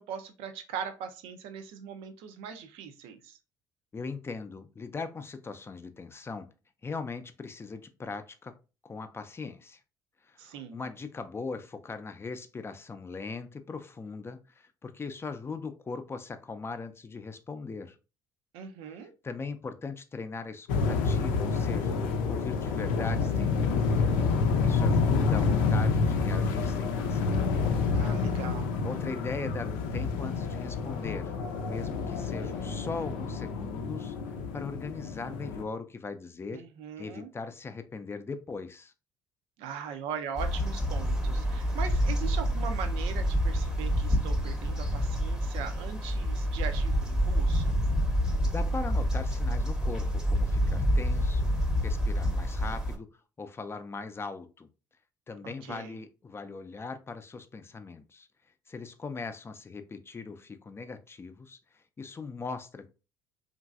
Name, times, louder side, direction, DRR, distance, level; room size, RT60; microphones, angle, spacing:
voice 1, 0.0-3.4 10.4-10.9 18.5-19.1 27.9-28.7 36.5-37.3 39.6-47.7 55.4-56.0, right 7 dB, 70° right, 0.5 m, -40 dB
voice 2, 3.9-6.5 6.8-8.6 8.8-9.8 10.2-18.0 19.2-22.0 22.3-24.2 24.6-27.3 28.8-31.3 31.7-34.2 34.5-36.6 37.0-38.9 48.4-51.5 51.8-53.1 53.4-54.7 55.3-58.3 58.7-62.9, left 4 dB, 25° left, 0.4 m, -39 dB
sound 1, 20.7-35.6, left 4 dB, 75° left, 0.5 m, -28 dB
sound 2, 40.4-53.0, equal, 5° right, 0.8 m, -28 dB
3.0 x 2.5 x 2.4 m
hypercardioid pair, 60°, 10 cm